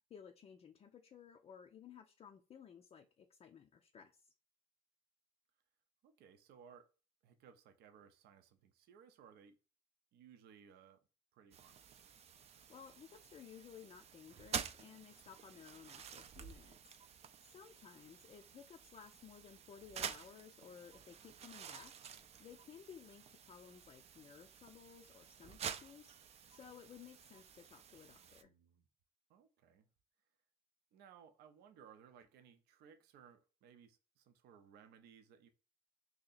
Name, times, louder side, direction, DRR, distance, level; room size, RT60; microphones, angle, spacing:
voice 1, 0.1-4.3 12.4-17.0 17.4-28.5, left 7 dB, 35° left, 0.4 m, -57 dB
voice 2, 6.0-6.9 7.2-9.6 10.1-11.0 11.3-12.0 28.4-28.9 29.3-29.9 30.9-35.5, right 7 dB, 75° right, 0.6 m, -62 dB
sound 1, 11.5-28.4, right 8 dB, 40° right, 0.4 m, -50 dB
2.8 x 2.7 x 3.9 m
cardioid pair, 110°, 17 cm